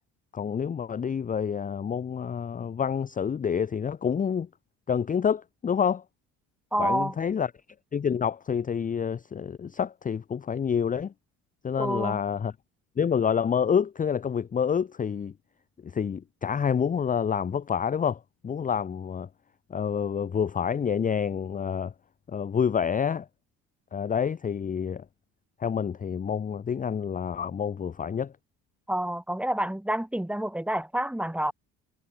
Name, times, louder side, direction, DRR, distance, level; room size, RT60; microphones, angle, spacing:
voice 1, 0.3-4.5 4.9-6.0 6.8-7.5 7.9-11.1 11.6-12.5 13.0-15.3 15.8-19.3 19.7-21.9 22.3-23.3 23.9-25.0 25.6-28.3, left 7 dB, 25° left, 0.7 m, -28 dB
voice 2, 6.7-7.1 11.8-12.2 28.9-31.5, right 1 dB, 5° right, 1.5 m, -28 dB
cardioid pair, 105°, 35 cm